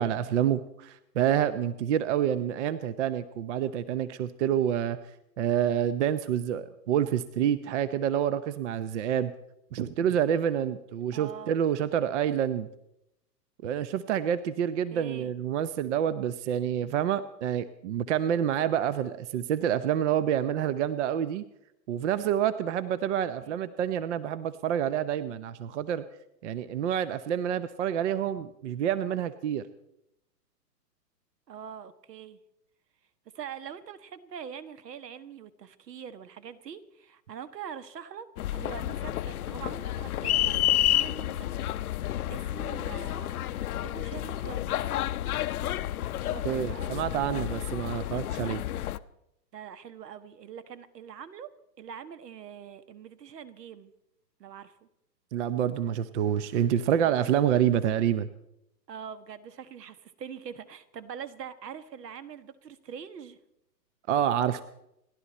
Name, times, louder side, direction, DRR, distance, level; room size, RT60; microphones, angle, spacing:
voice 1, 0.0-5.0 5.4-9.3 9.7-12.7 13.6-21.4 21.9-26.0 26.4-29.7 46.4-48.6 55.3-58.3 64.1-64.6, right 9 dB, 45° right, 14 dB, 0.8 m, -28 dB
voice 2, 11.1-11.6 14.9-15.3 23.4-23.6 31.5-32.4 33.3-38.3 38.5-41.7 42.3-44.8 46.2-47.0 47.3-47.4 49.5-53.9 54.4-54.8 57.0-57.2 58.9-63.4, right 8 dB, 70° right, 13 dB, 1.6 m, -43 dB
sound 1, 38.4-49.0, left 13 dB, 60° left, 0.8 m, -30 dB
29.5 x 11.5 x 4.2 m, 0.81 s
hypercardioid pair, 145°, 50 cm